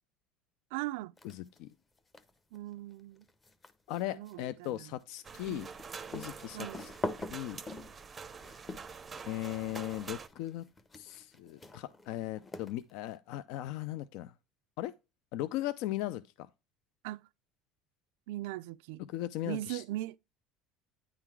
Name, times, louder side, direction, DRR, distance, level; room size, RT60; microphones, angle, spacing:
voice 1, 0.7-1.1 2.5-3.3 4.1-5.0 5.5-5.7 6.5-6.9 17.0-17.2 18.3-19.0 19.4-20.2, right 16 dB, 90° right, 0.4 m, -39 dB
voice 2, 1.2-1.7 3.9-5.7 6.1-6.9 7.3-7.6 9.3-10.6 11.0-14.3 14.8-14.9 15.3-16.5 19.1-19.8, left 14 dB, 65° left, 0.4 m, -38 dB
sound 1, 1.2-1.6 2.0-13.2, left 2 dB, 15° left, 0.7 m, -45 dB
sound 2, 5.2-10.3, right 5 dB, 20° right, 0.5 m, -46 dB
9.8 x 3.9 x 4.5 m
cardioid pair, 160°, 0 cm